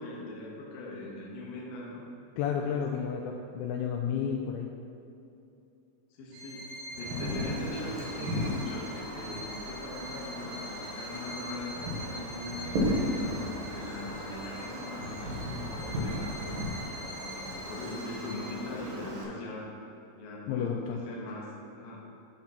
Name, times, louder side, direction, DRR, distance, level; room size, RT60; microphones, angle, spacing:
voice 1, 0.0-2.0 2.6-2.9 6.2-16.7 17.2-19.7 20.1-21.5 21.8-22.0, left 1 dB, 65° left, -4 dB, 2.5 m, -41 dB
voice 2, 2.4-4.7 20.5-21.0, left 7 dB, 85° left, 1 dB, 2.8 m, -31 dB
Bowed string instrument, 6.3-18.8, equal, 90° right, 4.0 m, -44 dB
Wind, 6.9-19.2, equal, 65° right, 2.2 m, -36 dB
11.0 x 3.7 x 5.8 m, 2.8 s
omnidirectional pair, 5.6 m